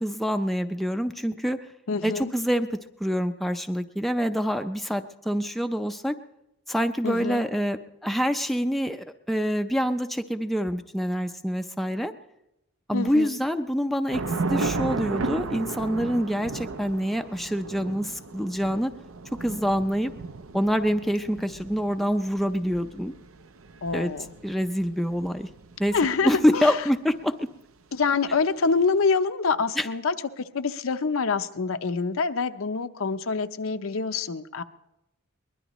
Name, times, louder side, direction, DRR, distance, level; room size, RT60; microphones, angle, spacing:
voice 1, 0.0-1.6 2.0-6.2 6.7-12.1 12.9-18.9 19.4-20.1 20.5-23.1 23.9-24.1 24.4-25.5 25.8-25.9 26.2-27.5 29.8-29.9, equal, ahead, 6 dB, 0.5 m, -26 dB
voice 2, 1.9-2.3 7.0-7.4 12.9-13.3 23.8-24.3 25.9-26.8 27.9-34.6, left 4 dB, 75° left, 9 dB, 0.7 m, -26 dB
Thunder / Rain, 14.1-26.6, right 3 dB, 70° right, 0.7 m, -35 dB
22.5 x 20.5 x 3.1 m, 0.90 s
head